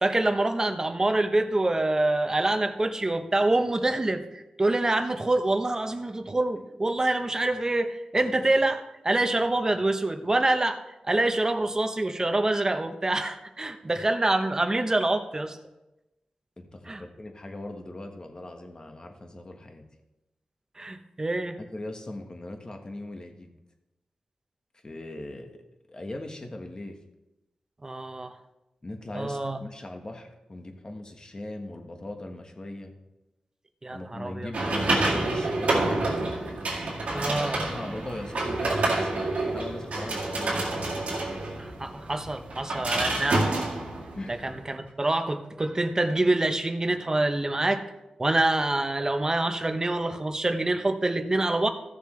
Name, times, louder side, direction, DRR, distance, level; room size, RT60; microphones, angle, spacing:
voice 1, 0.0-10.8 11.0-15.6 16.9-17.0 20.8-21.6 27.8-28.3 29.1-29.6 33.8-34.5 37.1-37.6 41.6-43.5 44.3-47.8 48.2-51.7, right 2 dB, 30° right, 7 dB, 1.0 m, -26 dB
voice 2, 16.6-19.8 21.6-23.5 24.8-27.0 28.8-32.9 33.9-36.3 37.1-41.2 44.2-44.4, left 1 dB, 35° left, 4 dB, 1.4 m, -40 dB
sound 1, 34.5-44.6, right 2 dB, 85° right, 2.1 m, -28 dB
15.0 x 6.8 x 3.3 m, 0.97 s
cardioid pair, 65°, 2 cm